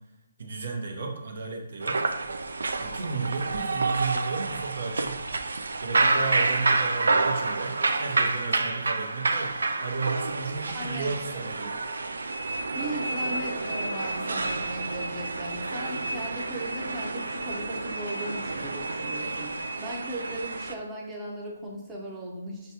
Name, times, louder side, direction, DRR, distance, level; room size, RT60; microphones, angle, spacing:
voice 1, 0.4-2.0 2.8-5.2 5.8-11.8, right 4 dB, 65° right, 1 dB, 0.9 m, -33 dB
sound 1, 1.8-20.7, right 3 dB, 85° right, 0.4 m, -29 dB
voice 2, 10.7-11.5 12.7-19.5 19.8-22.7, right 1 dB, 10° right, -5 dB, 0.7 m, -37 dB
6.2 x 2.3 x 2.8 m, 0.93 s
hypercardioid pair, 160°, 0 cm